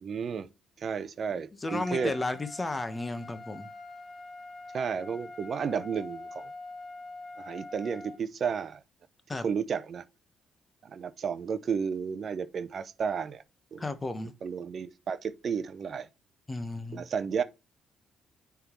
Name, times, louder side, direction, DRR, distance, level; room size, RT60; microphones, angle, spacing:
voice 1, 0.0-0.5 0.8-2.1 4.7-6.5 7.4-8.8 9.4-10.0 10.8-13.4 13.7-13.8 14.4-16.1 16.9-17.4, right 6 dB, 50° right, 0.6 m, -32 dB
voice 2, 1.6-3.7 9.3-9.5 13.8-14.3 16.5-17.1, left 2 dB, 20° left, 1.0 m, -33 dB
Trumpet, 1.7-8.2, left 2 dB, 5° left, 2.0 m, -44 dB
9.5 x 3.5 x 3.0 m
cardioid pair, 90°, 0 cm